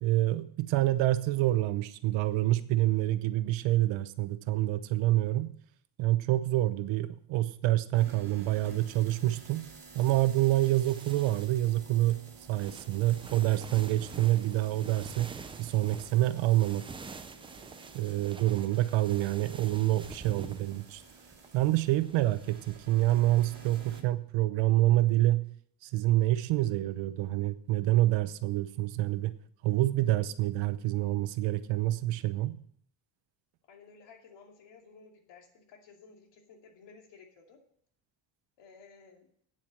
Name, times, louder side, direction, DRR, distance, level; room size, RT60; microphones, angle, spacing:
voice 1, 0.0-5.5 6.0-9.6 9.9-12.2 12.5-15.3 15.6-16.8 17.9-21.0 21.5-25.4 25.8-29.3 29.6-32.6, right 15 dB, 70° right, 13 dB, 0.9 m, -27 dB
sound 1, 7.9-24.0, right 4 dB, 45° right, 2.5 m, -52 dB
sound 2, 10.0-24.0, right 4 dB, 15° right, 0.3 m, -48 dB
voice 2, 33.7-37.6 38.6-39.3, left 5 dB, 65° left, 2 dB, 2.6 m, -55 dB
8.9 x 7.7 x 7.5 m, 0.63 s
cardioid pair, 155°, 46 cm